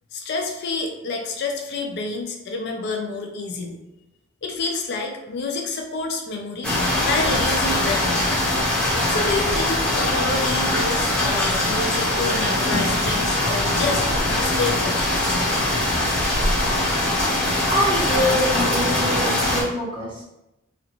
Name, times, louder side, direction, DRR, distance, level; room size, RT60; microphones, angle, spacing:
voice 1, 0.1-3.8 4.4-6.7 7.1-8.2 9.0-14.0 14.3-15.2, left 3 dB, 60° left, 2 dB, 0.4 m, -28 dB
sound 1, 6.6-19.6, left 1 dB, 5° left, 1.0 m, -22 dB
voice 2, 17.7-20.2, equal, 25° right, -6 dB, 1.0 m, -24 dB
2.8 x 2.4 x 2.9 m, 0.90 s
head